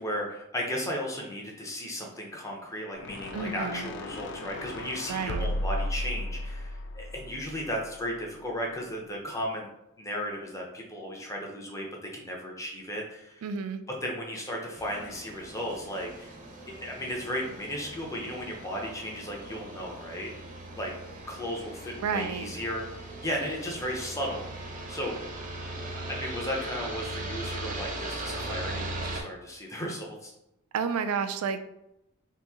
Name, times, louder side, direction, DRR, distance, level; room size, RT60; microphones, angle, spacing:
voice 1, 0.0-9.7 10.0-13.4 14.0-16.4 16.7-20.3 20.8-20.9 21.3-24.5 24.9-25.2 25.8-30.3, equal, 15° left, -1 dB, 0.6 m, -35 dB
sound 1, 3.0-8.2, left 1 dB, 55° left, 0.3 m, -35 dB
voice 2, 3.3-3.9 5.1-5.5 13.4-13.8 22.0-22.5 30.7-31.6, right 6 dB, 90° right, 9 dB, 0.3 m, -30 dB
sound 2, 14.7-29.2, right 2 dB, 35° right, 0.6 m, -39 dB
2.9 x 2.5 x 3.5 m, 0.85 s
head